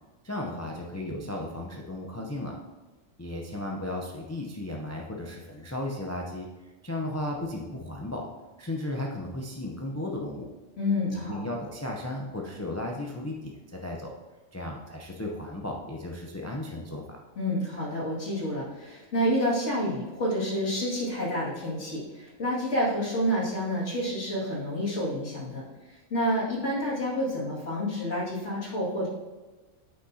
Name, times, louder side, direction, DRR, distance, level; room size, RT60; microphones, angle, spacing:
voice 1, 0.2-2.6 3.2-8.3 8.6-10.5 11.3-14.1 14.5-17.2, left 1 dB, 20° left, 0 dB, 0.5 m, -35 dB
voice 2, 10.8-11.5 17.4-29.1, equal, 60° left, -6 dB, 2.7 m, -29 dB
8.4 x 5.9 x 2.8 m, 1.2 s
omnidirectional pair, 1.4 m